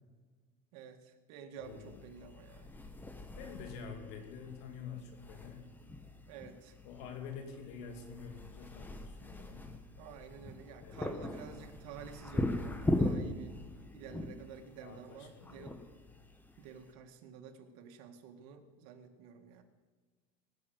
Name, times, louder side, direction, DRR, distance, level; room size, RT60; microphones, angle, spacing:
voice 1, 0.7-2.7 6.3-6.8 10.0-13.6 13.9-15.8 16.6-19.6, right 7 dB, 80° right, 6 dB, 1.7 m, -50 dB
voice 2, 1.6-2.0 3.4-5.7 6.8-9.7 10.8-11.2 11.5-11.6 14.8-15.8, left 6 dB, 70° left, 4 dB, 2.7 m, -47 dB
sound 1, 1.6-16.9, left 1 dB, 10° left, 1.3 m, -40 dB
19.0 x 6.5 x 7.9 m, 1.4 s
supercardioid pair, 125°, 18 cm